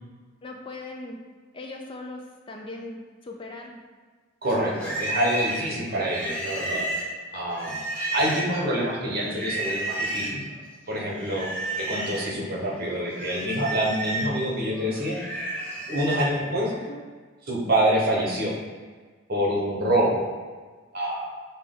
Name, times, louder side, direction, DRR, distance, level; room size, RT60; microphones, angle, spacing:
voice 1, 0.4-1.2 1.5-3.8 16.7-17.0, left 2 dB, 25° left, 1 dB, 0.3 m, -39 dB
Livestock farm animals working animals, 4.4-8.7 9.3-10.4 11.2-12.3 12.7-16.4, right 1 dB, 5° left, 0.9 m, -32 dB
voice 2, 4.4-6.9 7.3-7.8 8.1-10.4 10.9-11.5 11.8-15.2 15.9-16.7 17.5-18.5 19.3-20.2 20.9-21.3, right 1 dB, 50° right, -3 dB, 1.1 m, -26 dB
5.8 x 2.3 x 3.7 m, 1.5 s
head